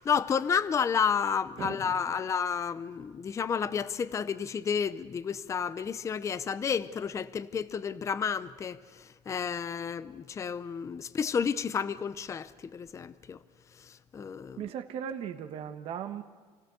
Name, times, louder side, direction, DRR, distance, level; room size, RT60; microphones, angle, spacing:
voice 1, 0.0-8.8 9.3-13.4 13.9-14.7, left 6 dB, 25° left, 0.6 m, -31 dB
voice 2, 14.6-16.2, right 9 dB, 55° right, 1.2 m, -37 dB
27.5 x 17.5 x 6.9 m
cardioid pair, 140°, 12 cm